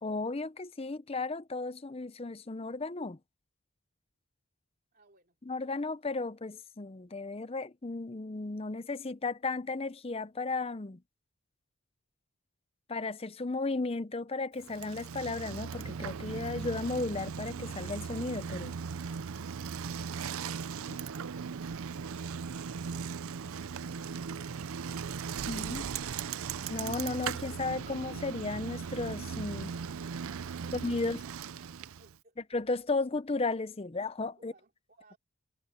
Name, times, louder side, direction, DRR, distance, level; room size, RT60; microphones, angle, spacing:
voice 1, 0.0-3.2 5.5-11.0 12.9-18.7 20.9-21.0 25.5-25.8 26.7-29.7 30.7-31.2 32.5-34.5, left 3 dB, 25° left, 0.6 m, -34 dB
voice 2, 4.9-5.4 31.7-32.4 34.4-35.2, right 3 dB, 40° right, 3.6 m, -64 dB
Bicycle, 14.6-32.2, right 6 dB, 70° right, 0.5 m, -38 dB
head